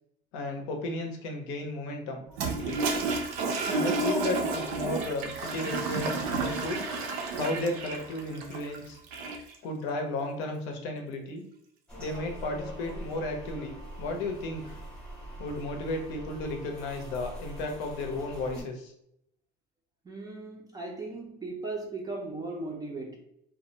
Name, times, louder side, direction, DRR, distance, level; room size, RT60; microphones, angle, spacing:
voice 1, 0.3-2.8 3.7-6.8 7.4-9.0 9.6-11.4 12.0-14.8 15.4-18.9, left 2 dB, 75° left, 3 dB, 0.6 m, -34 dB
Toilet flush, 2.3-9.5, right 3 dB, 85° right, 0.5 m, -31 dB
sound 1, 11.9-18.6, equal, 5° left, 0.7 m, -43 dB
voice 2, 20.1-23.2, right 2 dB, 20° right, 0 dB, 0.3 m, -37 dB
2.3 x 2.1 x 2.7 m, 0.75 s
cardioid pair, 125°, 21 cm